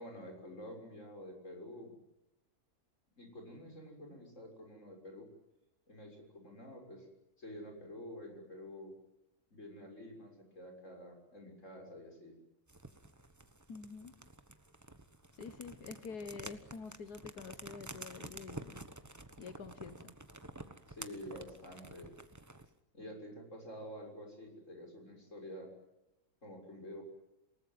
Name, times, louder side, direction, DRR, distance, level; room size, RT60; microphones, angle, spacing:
voice 1, 0.0-1.9 3.2-5.3 5.9-7.1 7.4-8.9 9.5-12.4 20.9-22.1 22.9-25.7 26.4-27.1, equal, 50° left, 6.9 m, -49 dB
sound 1, 12.7-22.7, right 2 dB, 10° right, 1.1 m, -50 dB
voice 2, 13.7-14.1 15.3-18.8 19.4-20.1, left 5 dB, 90° left, 1.9 m, -47 dB
28.0 x 19.0 x 9.4 m
omnidirectional pair, 1.6 m